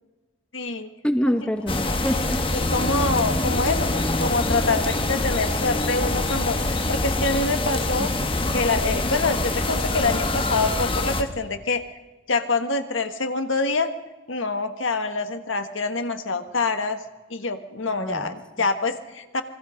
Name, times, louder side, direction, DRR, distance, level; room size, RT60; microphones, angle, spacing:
voice 1, 0.5-0.9 2.7-8.1 8.5-11.8 12.3-13.9 14.3-17.0 17.3-19.4, left 3 dB, 65° left, 8 dB, 1.7 m, -25 dB
voice 2, 1.0-2.5 17.8-18.7, equal, 5° left, 7 dB, 1.1 m, -26 dB
sound 1, 1.7-11.2, left 2 dB, 25° left, 1.4 m, -25 dB
27.5 x 22.0 x 5.2 m, 1.2 s
head